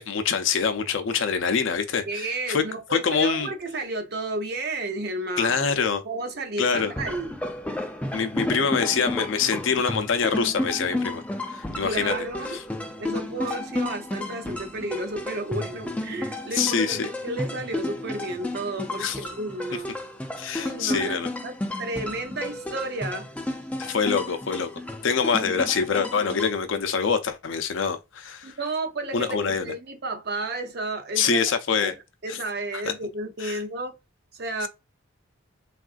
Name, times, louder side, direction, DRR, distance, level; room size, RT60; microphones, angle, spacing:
voice 1, 0.0-2.6 2.9-3.5 5.4-6.0 6.6-6.9 8.1-11.2 11.5-12.1 16.5-17.1 19.0-19.2 20.4-21.3 23.8-24.7 25.0-28.5 29.1-29.7 31.2-31.9 32.3-32.4 32.8-32.9 33.4-33.6, left 6 dB, 65° left, 0.5 m, -25 dB
voice 2, 2.1-5.6 6.0-7.3 11.8-12.5 13.0-20.0 20.6-23.6 24.0-24.1 28.4-31.5 31.8-32.0 32.2-33.9 34.3-34.7, right 2 dB, 50° right, 0.6 m, -32 dB
sound 1, 6.7-26.5, left 1 dB, 5° left, 0.3 m, -32 dB
3.5 x 2.4 x 2.4 m
head